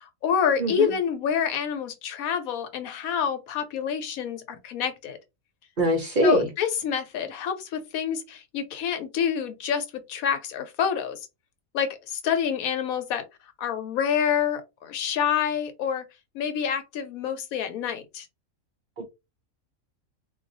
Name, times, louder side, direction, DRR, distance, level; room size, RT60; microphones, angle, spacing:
voice 1, 0.0-5.2 6.2-11.2 11.7-13.2 13.6-16.0 16.3-18.3, left 8 dB, 90° left, 1.1 m, -27 dB
voice 2, 0.6-0.9 5.8-6.5 19.0-19.1, right 1 dB, 50° right, 0.7 m, -23 dB
2.4 x 2.3 x 3.9 m
omnidirectional pair, 1.5 m